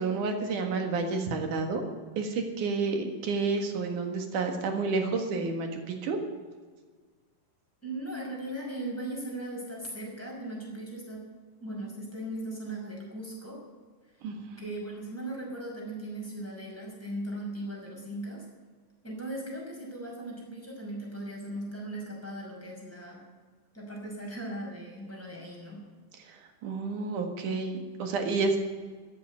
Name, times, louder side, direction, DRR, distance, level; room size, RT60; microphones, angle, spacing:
voice 1, 0.0-1.8 2.2-6.2 14.2-14.6 26.3-26.4 26.6-28.6, right 4 dB, 60° right, 4 dB, 3.0 m, -30 dB
voice 2, 7.8-11.2 11.6-13.6 14.6-18.5 19.0-23.3 23.7-25.8, right 1 dB, 5° left, -3 dB, 5.5 m, -38 dB
13.5 x 10.0 x 9.5 m, 1.5 s
omnidirectional pair, 4.4 m